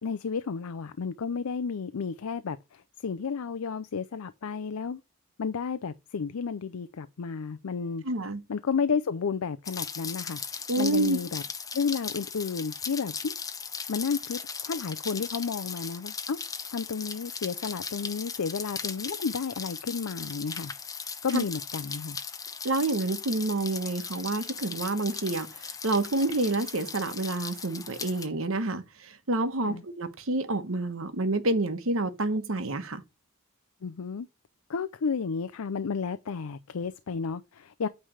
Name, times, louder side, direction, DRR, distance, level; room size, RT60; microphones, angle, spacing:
voice 1, 0.0-5.0 5.4-8.0 8.5-11.4 11.7-13.3 13.9-16.4 16.7-20.7 21.2-22.2 29.6-29.8 33.8-34.3 34.7-37.9, left 5 dB, 75° left, 0.5 m, -32 dB
voice 2, 8.0-8.4 10.7-11.2 21.3-21.4 22.6-33.0, right 2 dB, 65° right, 1.1 m, -28 dB
Rain, 9.6-28.3, left 6 dB, 15° left, 0.5 m, -38 dB
8.9 x 3.3 x 6.4 m
head